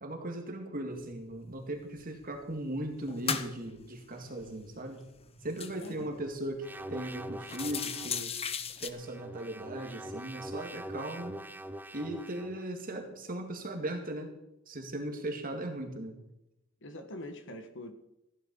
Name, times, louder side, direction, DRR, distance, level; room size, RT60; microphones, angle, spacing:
voice 1, 0.0-5.0 5.4-8.3 8.8-11.4 11.9-14.3 14.7-16.2, right 1 dB, 40° right, 4 dB, 2.2 m, -38 dB
sound 1, 1.1-1.2 1.6-2.4 2.8-6.5 6.9-7.0 7.3-8.9, left 6 dB, 30° left, 0.8 m, -39 dB
voice 2, 5.8-6.1 16.8-17.9, left 1 dB, 60° left, 8 dB, 1.5 m, -44 dB
sound 2, 6.6-8.2 9.0-12.6, right 1 dB, 10° right, 0.5 m, -43 dB
15.0 x 11.0 x 5.4 m, 0.87 s
head